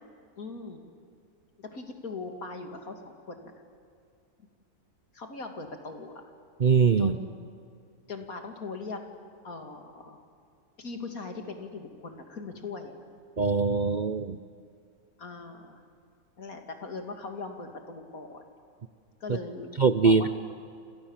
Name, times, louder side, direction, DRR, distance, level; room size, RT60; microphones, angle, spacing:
voice 1, 0.4-0.9 1.6-3.5 5.1-6.1 7.0-7.3 8.1-9.0 9.4-10.2 10.8-12.9 15.2-15.8 16.4-18.4 19.2-19.8 20.0-20.3, left 3 dB, 70° left, 4 dB, 3.1 m, -40 dB
voice 2, 6.6-7.2 13.4-14.4 19.8-20.3, right 5 dB, 40° right, 10 dB, 0.7 m, -22 dB
28.5 x 27.0 x 7.4 m, 2.4 s
omnidirectional pair, 1.6 m